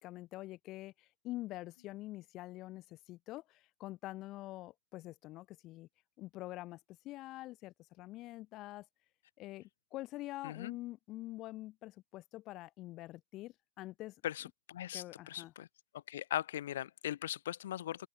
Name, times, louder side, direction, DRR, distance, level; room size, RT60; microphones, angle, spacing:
voice 1, 0.0-5.9 6.2-6.8 7.0-8.9 9.4-14.1 14.9-15.5, left 17 dB, 30° left, 2.9 m, -46 dB
voice 2, 10.4-10.8 14.2-15.7 16.1-18.1, left 12 dB, 60° left, 4.2 m, -39 dB
open air
hypercardioid pair, 145°, 0 cm